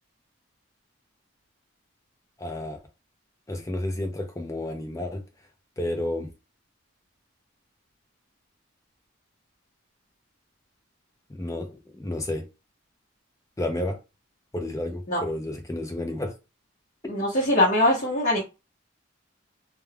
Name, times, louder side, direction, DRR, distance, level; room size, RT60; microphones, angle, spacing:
voice 1, 2.4-2.8 3.5-5.2 5.8-6.3 11.4-12.4 13.6-14.0 14.5-16.3 17.0-17.1, left 1 dB, 15° left, 0.4 m, -31 dB
voice 2, 17.1-18.4, left 1 dB, 40° left, 0.8 m, -22 dB
2.2 x 2.2 x 3.3 m
head